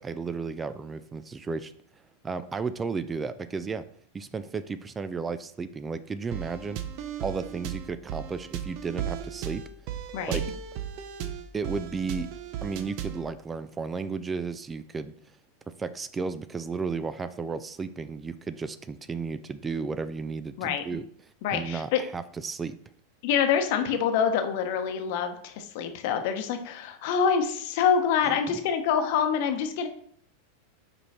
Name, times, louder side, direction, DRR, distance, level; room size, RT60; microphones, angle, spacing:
voice 1, 0.0-1.7 2.2-3.9 4.1-6.8 7.2-9.6 10.3-10.4 11.5-12.3 12.6-15.4 15.8-21.0 21.5-22.8 28.3-28.6, right 5 dB, 20° right, 13 dB, 0.4 m, -33 dB
sound 1, 6.3-13.3, right 9 dB, 55° right, 0.7 m, -35 dB
voice 2, 21.4-22.0 23.2-29.9, left 7 dB, 60° left, 7 dB, 0.9 m, -26 dB
5.3 x 4.5 x 4.2 m, 0.63 s
hypercardioid pair, 100°, 0 cm